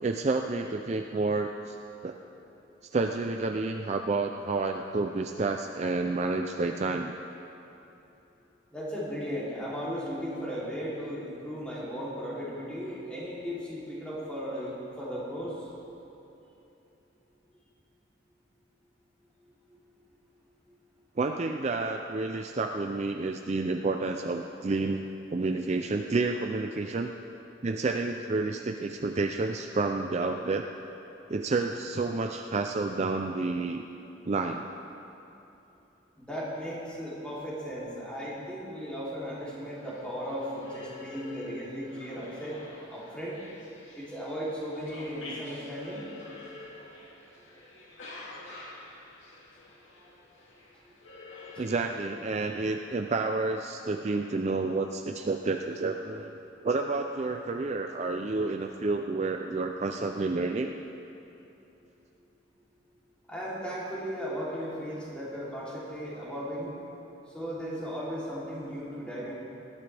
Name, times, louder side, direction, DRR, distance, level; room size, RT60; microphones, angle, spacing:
voice 1, 0.0-1.8 2.0-2.2 2.9-7.1 21.2-27.1 27.6-30.7 31.3-33.8 34.3-34.7 51.6-56.4 56.6-60.7, right 3 dB, 35° right, 4 dB, 0.4 m, -30 dB
voice 2, 8.7-15.7 19.7-19.8 20.7-20.8 36.2-42.6 42.9-43.4 43.9-46.1 63.3-66.7 67.3-69.3, equal, 5° left, -8 dB, 3.0 m, -36 dB
sound 1, 39.3-52.0, left 2 dB, 80° left, 2.4 m, -48 dB
19.5 x 12.5 x 3.4 m, 3.0 s
head